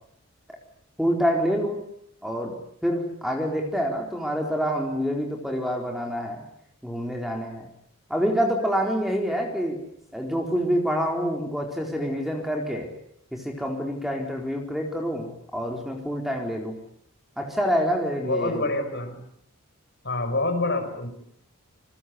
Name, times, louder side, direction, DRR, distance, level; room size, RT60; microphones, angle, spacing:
voice 1, 1.0-1.8 2.2-6.4 6.8-7.7 8.1-9.8 10.1-12.9 13.3-16.8 17.4-18.7, equal, ahead, 2 dB, 4.2 m, -27 dB
voice 2, 18.2-19.2 20.0-21.1, left 2 dB, 50° left, 6 dB, 6.0 m, -27 dB
28.0 x 24.0 x 8.4 m, 0.69 s
head